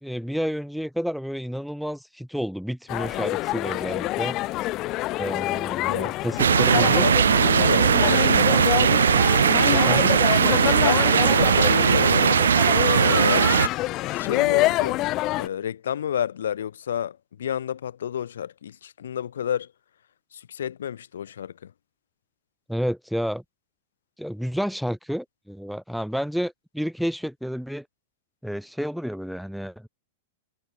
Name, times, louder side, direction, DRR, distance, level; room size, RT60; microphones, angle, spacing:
voice 1, 0.0-4.4 5.2-7.1 9.7-10.1 22.7-23.4 24.2-27.9 28.4-29.9, equal, ahead, 2.6 m, -30 dB
sound 1, 2.9-15.5, left 18 dB, 40° left, 0.6 m, -26 dB
voice 2, 5.9-8.7 10.6-12.4 12.9-13.5 14.1-15.0 15.3-19.7 20.3-21.7, left 9 dB, 70° left, 5.8 m, -31 dB
sound 2, 6.4-13.7, right 7 dB, 75° right, 0.4 m, -19 dB
figure-of-eight pair, 100°, 0 cm